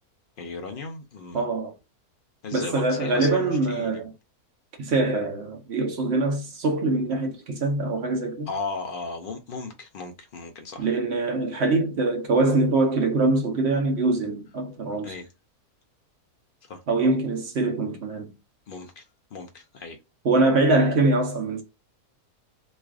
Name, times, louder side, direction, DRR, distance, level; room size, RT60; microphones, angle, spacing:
voice 1, 0.4-1.4 2.4-4.0 8.5-10.9 15.0-15.3 16.6-16.8 18.7-19.0 19.3-20.0, left 4 dB, 85° left, 0.4 m, -36 dB
voice 2, 1.3-1.7 2.5-4.0 4.8-8.5 10.8-15.1 16.9-18.3 20.2-21.6, right 2 dB, 50° right, 0.9 m, -23 dB
3.2 x 2.4 x 3.4 m
omnidirectional pair, 1.6 m